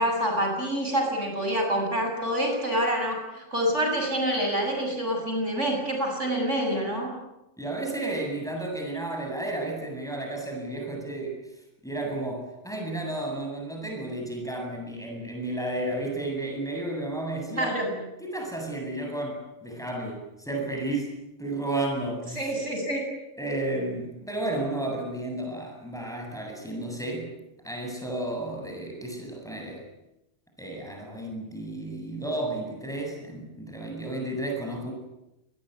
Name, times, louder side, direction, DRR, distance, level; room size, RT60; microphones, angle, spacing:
voice 1, 0.0-7.1 17.5-17.9 22.4-23.0, equal, 65° right, 2 dB, 7.8 m, -27 dB
voice 2, 7.6-11.4 11.8-17.7 18.2-22.5 23.4-27.3 27.6-29.8 30.6-34.9, right 2 dB, ahead, 1 dB, 8.0 m, -32 dB
27.0 x 21.0 x 9.7 m, 0.91 s
omnidirectional pair, 1.3 m